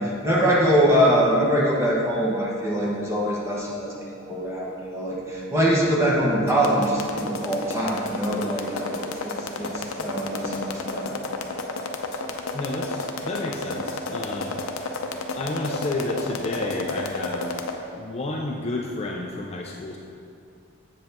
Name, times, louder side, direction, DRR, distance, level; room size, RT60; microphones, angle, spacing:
voice 1, 0.0-9.3 9.6-11.2, equal, 15° right, -5 dB, 1.2 m, -23 dB
sound 1, 6.5-17.7, left 3 dB, 85° left, 0.6 m, -31 dB
voice 2, 12.5-14.6 15.4-17.5 18.0-20.0, left 2 dB, 30° left, 0 dB, 0.4 m, -31 dB
7.6 x 7.3 x 3.5 m, 2.4 s
head